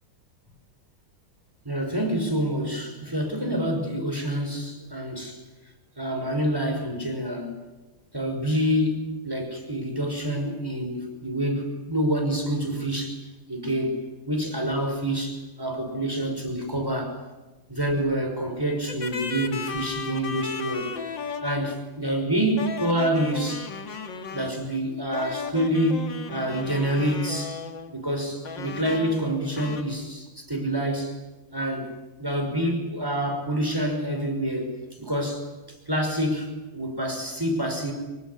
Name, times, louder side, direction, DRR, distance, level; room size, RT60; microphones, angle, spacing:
voice 1, 1.6-5.4 6.0-7.5 8.1-13.2 13.5-14.0 14.3-17.2 17.7-20.9 21.4-23.7 24.3-27.6 27.9-31.1 31.5-31.9 32.2-34.7 35.0-35.5 35.9-37.9, right 1 dB, 10° right, 3 dB, 5.8 m, -27 dB
sound 1, 18.9-21.8 22.6-24.6 25.1-27.9 28.4-29.3 29.6-29.8, left 5 dB, 65° left, 2.5 m, -35 dB
26.5 x 23.5 x 9.6 m, 1.1 s
omnidirectional pair, 2.2 m